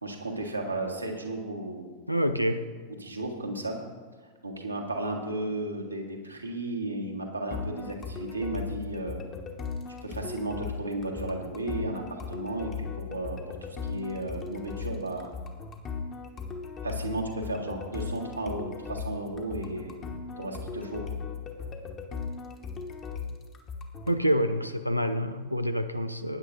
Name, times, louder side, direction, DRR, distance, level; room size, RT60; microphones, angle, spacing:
voice 1, 0.0-1.9 3.0-3.8 4.4-9.2 10.0-15.3 16.8-20.1 20.4-21.1, right 2 dB, 85° right, 1 dB, 1.6 m, -34 dB
voice 2, 2.1-2.7 24.1-26.4, equal, 90° left, 10 dB, 0.6 m, -27 dB
sound 1, 7.5-24.2, left 5 dB, 30° left, 1.3 m, -38 dB
19.5 x 9.9 x 2.6 m, 1.4 s
figure-of-eight pair, 90°, 0 cm